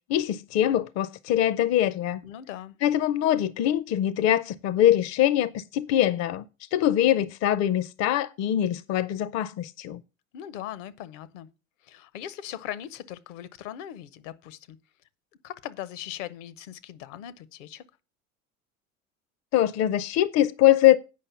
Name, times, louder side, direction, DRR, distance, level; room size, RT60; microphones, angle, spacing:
voice 1, 0.1-2.2 2.8-6.4 6.7-10.0 19.5-21.0, left 12 dB, 40° left, 0.6 m, -23 dB
voice 2, 2.2-2.8 10.3-11.5 11.8-14.8 15.4-17.8, left 11 dB, 65° left, 0.9 m, -39 dB
8.6 x 5.5 x 6.9 m
hypercardioid pair, 70°, 41 cm